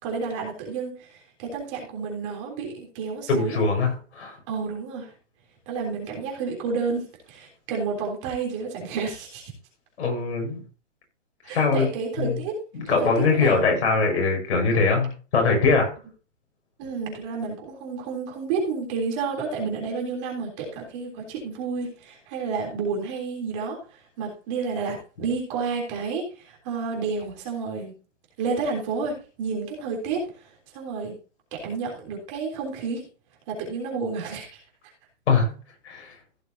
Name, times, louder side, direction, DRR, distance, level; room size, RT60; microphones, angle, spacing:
voice 1, 0.0-3.6 4.5-5.1 5.7-9.4 11.4-12.6 13.0-14.0 16.8-27.9 28.4-31.2 31.5-33.0 33.5-34.6, right 4 dB, 25° right, 3.5 m, -30 dB
voice 2, 3.3-4.4 10.0-10.6 11.5-11.9 12.2-12.4 12.7-15.9 35.3-35.6 35.8-36.2, left 4 dB, 60° left, 5.9 m, -22 dB
16.0 x 6.5 x 2.8 m
hypercardioid pair, 180°, 37 cm